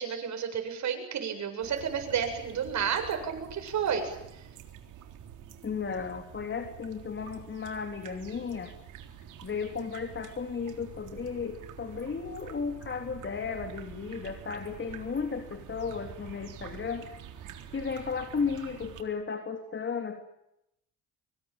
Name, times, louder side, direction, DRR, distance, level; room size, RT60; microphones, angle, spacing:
voice 1, 0.0-4.4, right 7 dB, 65° right, 5 dB, 8.0 m, -31 dB
sound 1, 1.6-19.0, right 9 dB, 90° right, 3.8 m, -47 dB
voice 2, 5.6-8.7 9.4-17.1 17.7-20.2, left 5 dB, 40° left, 6 dB, 3.6 m, -34 dB
25.5 x 25.0 x 9.2 m, 0.83 s
cardioid pair, 90°, 30 cm